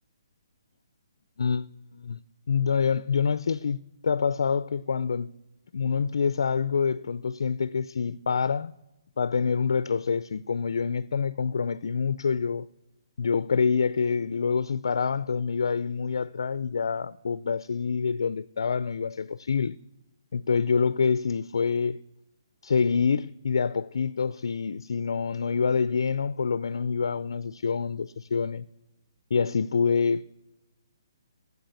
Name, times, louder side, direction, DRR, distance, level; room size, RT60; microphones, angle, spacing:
voice 1, 1.4-2.2 2.5-3.8 4.0-5.3 5.7-8.7 9.2-12.7 13.2-19.8 20.3-22.0 22.6-28.6 29.3-30.3, left 5 dB, 75° left, 0.4 m, -26 dB
13.0 x 8.4 x 9.3 m
hypercardioid pair, 170°, 2 cm